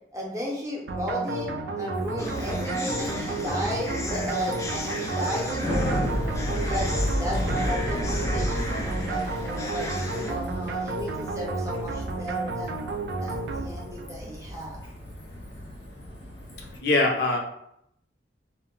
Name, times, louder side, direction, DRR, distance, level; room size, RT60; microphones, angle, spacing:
voice 1, 0.1-6.0 6.7-9.9 10.3-12.8 13.2-14.8, equal, 20° right, -3 dB, 0.7 m, -34 dB
sound 1, 0.9-14.2, right 3 dB, 70° right, 0.3 m, -32 dB
Bicycle, 1.9-16.8, equal, 90° left, 1.0 m, -33 dB
sound 2, 2.2-10.3, left 1 dB, 15° left, 0.3 m, -35 dB
voice 2, 16.6-17.4, left 2 dB, 65° left, 1 dB, 0.5 m, -23 dB
2.2 x 2.1 x 3.6 m, 0.75 s
head